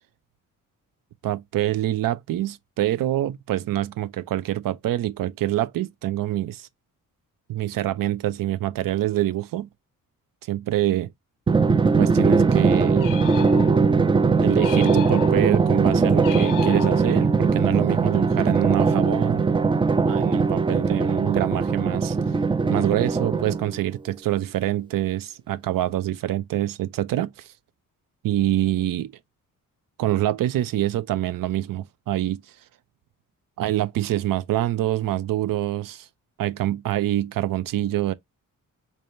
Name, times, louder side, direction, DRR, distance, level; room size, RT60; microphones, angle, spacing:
voice 1, 1.2-6.7 7.5-9.7 10.5-11.1 12.0-13.1 14.4-19.5 20.1-22.2 22.7-27.5 28.2-29.1 30.0-32.4 33.6-36.1 36.4-38.1, right 13 dB, 70° right, 0.5 m, -25 dB
Drum, 11.5-23.8, right 4 dB, 15° right, 0.3 m, -20 dB
sound 1, 13.0-14.0 14.6-15.6 16.2-17.4, left 13 dB, 70° left, 0.6 m, -35 dB
4.3 x 3.3 x 2.5 m
cardioid pair, 100°, 34 cm